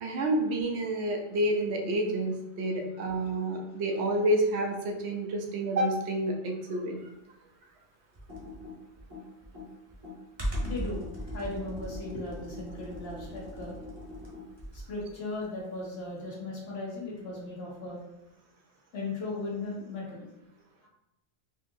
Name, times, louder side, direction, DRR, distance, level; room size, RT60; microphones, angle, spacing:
voice 1, 0.0-7.1, right 1 dB, 80° right, 2 dB, 0.9 m, -29 dB
Computer keyboard, 8.1-15.0, equal, 25° right, 0.8 m, -38 dB
voice 2, 10.6-13.8 14.7-18.0 18.9-20.3, left 2 dB, 70° left, -4 dB, 1.2 m, -37 dB
3.9 x 2.7 x 2.6 m, 0.90 s
omnidirectional pair, 1.1 m